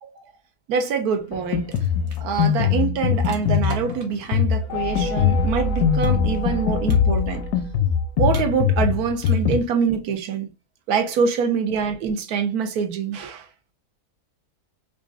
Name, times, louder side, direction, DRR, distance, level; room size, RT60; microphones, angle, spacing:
voice 1, 0.7-1.7 2.2-7.4 8.2-10.5 10.9-13.5, right 6 dB, 75° right, 1.2 m, -24 dB
sound 1, 1.1-1.3 1.6-4.4 6.0-6.6 6.9-7.4 8.3-8.9 9.2-9.7, right 3 dB, 50° right, 0.7 m, -43 dB
Drum kit, 1.3-9.6, left 8 dB, 80° left, 1.1 m, -22 dB
sound 2, 4.7-8.4, right 1 dB, 45° left, 0.6 m, -29 dB
4.9 x 2.4 x 2.4 m
omnidirectional pair, 1.6 m